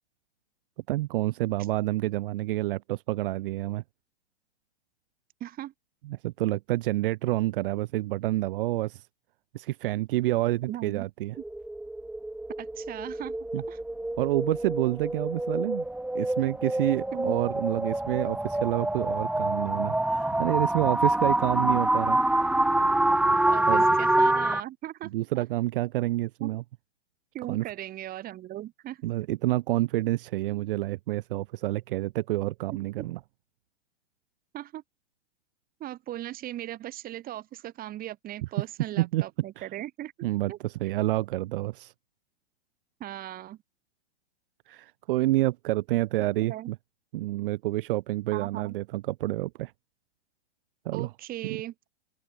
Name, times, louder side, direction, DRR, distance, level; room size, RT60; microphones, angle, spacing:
voice 1, 0.9-3.8 6.0-9.1 9.5-11.3 13.5-13.6 14.2-15.8 16.1-22.2 23.7-23.9 25.1-26.6 27.5-27.6 29.0-33.2 39.0-39.2 39.6-39.7 40.2-41.9 44.7-46.8 47.1-49.7 50.8-51.1 51.4-51.6, right 17 dB, 55° right, 1.0 m, -28 dB
voice 2, 5.4-5.7 10.7-11.1 12.6-13.4 13.7-13.8 17.1-17.4 23.5-25.1 25.4-25.5 26.4-26.5 27.3-29.0 33.0-33.1 34.5-34.8 35.8-40.1 40.5-40.6 43.0-43.6 46.2-46.7 48.3-48.7 50.9-51.7, right 13 dB, 25° right, 2.5 m, -38 dB
sound 1, 11.4-24.6, right 1 dB, 5° right, 1.6 m, -26 dB
open air
hypercardioid pair, 130°, 33 cm